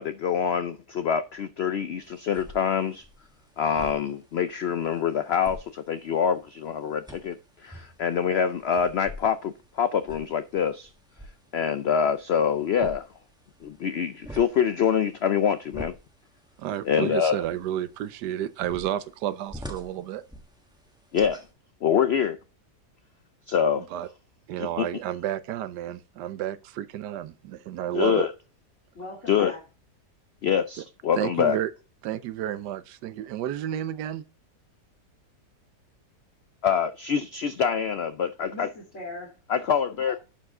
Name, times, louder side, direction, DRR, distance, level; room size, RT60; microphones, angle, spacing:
voice 1, 0.0-3.1 3.6-7.4 7.6-10.9 11.5-13.0 13.6-16.0 16.9-17.4 21.1-21.4 21.8-22.4 23.5-23.8 24.6-24.9 27.9-28.3 29.3-29.5 30.4-31.6 36.6-38.7 39.5-40.2, left 7 dB, 80° left, 0.5 m, -25 dB
sound 1, 2.0-21.5, equal, 5° right, 1.3 m, -47 dB
voice 2, 16.6-20.2 23.8-24.1 24.5-28.3 31.1-31.7 32.0-34.2, right 11 dB, 90° right, 1.3 m, -31 dB
voice 3, 28.9-29.6 38.4-39.7 40.1-40.2, left 2 dB, 45° left, 2.6 m, -40 dB
11.0 x 4.8 x 3.6 m
omnidirectional pair, 1.7 m